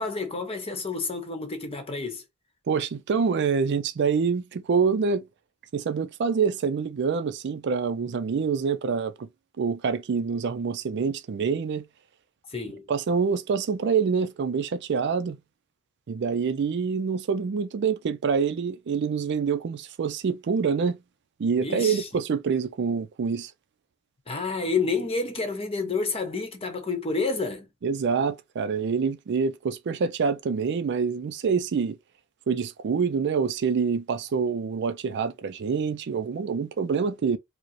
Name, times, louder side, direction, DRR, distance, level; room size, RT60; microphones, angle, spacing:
voice 1, 0.0-2.2 12.5-12.9 21.6-22.1 24.3-27.7, left 4 dB, 25° left, 0.9 m, -29 dB
voice 2, 2.7-5.2 5.7-9.3 9.6-11.9 12.9-15.4 16.1-21.0 21.4-23.5 27.8-32.0 32.5-37.4, right 5 dB, 55° right, 0.4 m, -26 dB
4.8 x 2.0 x 2.9 m
head